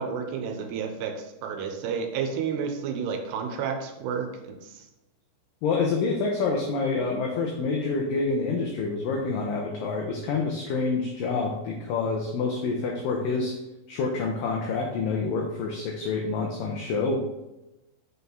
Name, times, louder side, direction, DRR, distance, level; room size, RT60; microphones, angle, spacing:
voice 1, 0.0-4.8, right 6 dB, 90° right, 5 dB, 2.7 m, -31 dB
voice 2, 5.6-13.5 13.9-17.2, left 4 dB, 85° left, 0 dB, 1.9 m, -27 dB
6.5 x 4.5 x 3.3 m, 0.97 s
omnidirectional pair, 4.8 m